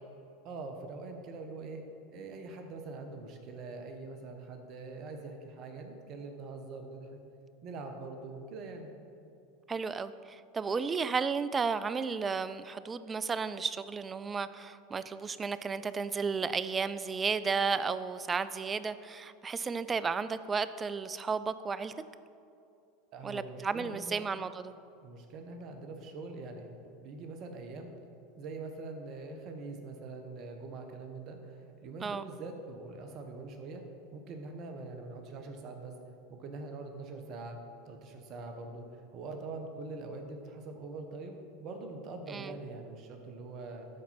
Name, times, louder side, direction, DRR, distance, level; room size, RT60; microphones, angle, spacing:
voice 1, 0.4-1.8 2.1-7.2 7.6-8.9 23.1-24.3 25.0-27.9 28.4-33.8 34.1-36.0 36.3-37.6 37.9-43.9, right 3 dB, 50° right, 5 dB, 1.1 m, -43 dB
voice 2, 9.7-21.9 23.2-24.7 32.0-32.2 42.3-42.6, right 5 dB, 25° right, 14 dB, 0.3 m, -33 dB
12.0 x 4.3 x 4.2 m, 2.6 s
hypercardioid pair, 85°, 0 cm